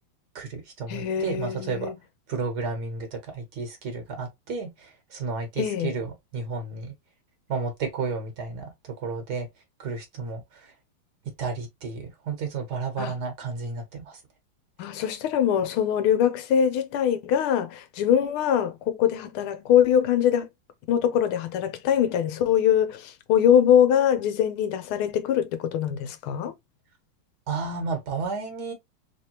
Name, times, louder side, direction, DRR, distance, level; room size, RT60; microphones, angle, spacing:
voice 1, 0.3-1.9 2.3-6.9 7.5-9.5 9.8-10.7 11.4-14.2 27.5-28.7, right 4 dB, 55° right, 1.4 m, -32 dB
voice 2, 0.9-1.9 5.6-5.9 13.0-13.1 14.8-20.5 20.9-26.5, left 9 dB, 90° left, 1.6 m, -23 dB
3.5 x 3.4 x 2.8 m
omnidirectional pair, 2.3 m